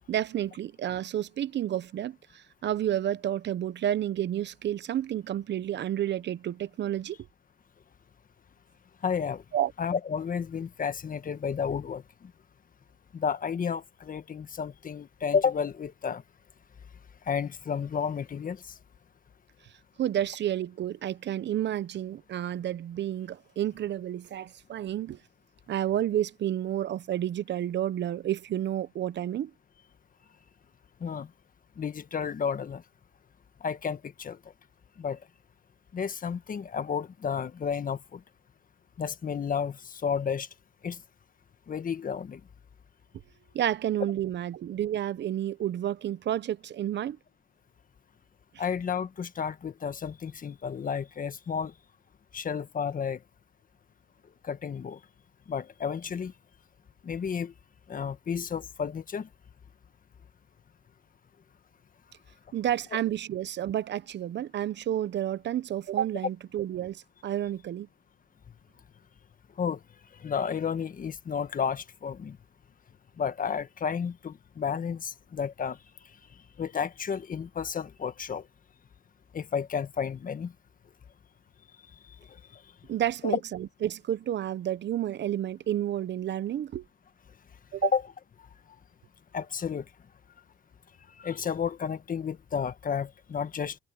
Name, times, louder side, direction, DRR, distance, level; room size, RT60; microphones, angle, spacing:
voice 1, 0.1-7.2 9.5-9.7 20.0-25.2 25.7-29.5 43.5-47.2 62.5-67.9 82.9-86.8 87.7-87.9, right 11 dB, 60° right, 0.9 m, -30 dB
voice 2, 9.0-9.4 9.8-12.0 13.1-16.2 17.3-18.6 31.0-31.3 31.8-32.8 33.6-34.4 35.0-35.2 35.9-38.2 39.0-40.5 40.8-41.0 41.7-42.4 48.6-51.7 52.3-53.2 54.4-55.0 55.5-56.3 57.0-57.5 57.9-59.3 69.6-69.8 70.2-72.4 73.2-75.8 76.6-78.4 79.3-80.5 82.5-82.6 83.2-83.4 87.8-88.0 89.3-89.8 91.2-93.8, left 6 dB, 45° left, 1.4 m, -31 dB
cardioid pair, 90°, 20 cm